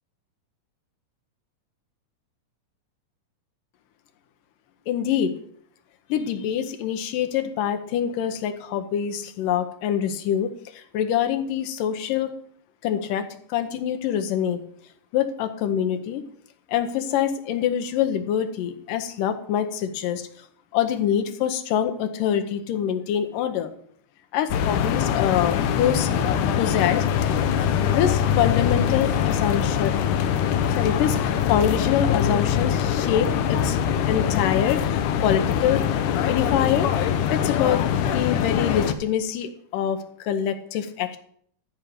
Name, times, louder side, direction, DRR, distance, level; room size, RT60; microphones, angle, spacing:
voice 1, 4.9-5.3 6.1-12.3 12.8-14.6 15.1-16.2 16.7-20.3 20.7-23.7 24.3-26.1 26.6-27.4 27.9-29.9 30.8-33.8 34.1-35.9 36.3-36.9 37.3-37.8 38.1-41.2, left 9 dB, 90° left, 8 dB, 2.5 m, -25 dB
sound 1, 24.5-38.9, left 8 dB, 75° left, 2.2 m, -23 dB
13.0 x 5.1 x 7.8 m, 0.62 s
omnidirectional pair, 3.8 m